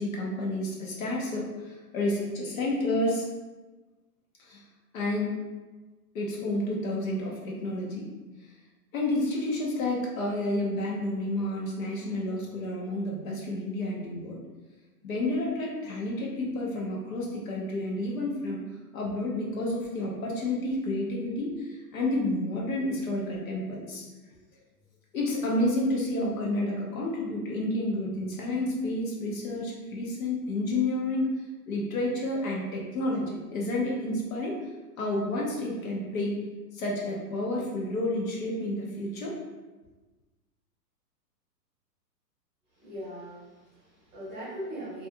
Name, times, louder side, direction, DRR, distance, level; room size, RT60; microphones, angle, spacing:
voice 1, 0.0-3.3 4.4-4.6 4.9-5.4 6.1-8.1 8.4-8.5 8.9-14.4 15.0-18.6 18.9-24.0 24.5-24.6 25.1-34.6 35.0-36.4 36.7-39.4, left 1 dB, 55° left, -3 dB, 0.7 m, -30 dB
voice 2, 42.7-45.1, equal, 20° right, -10 dB, 0.8 m, -40 dB
2.5 x 2.3 x 2.6 m, 1.2 s
hypercardioid pair, 150°, 50 cm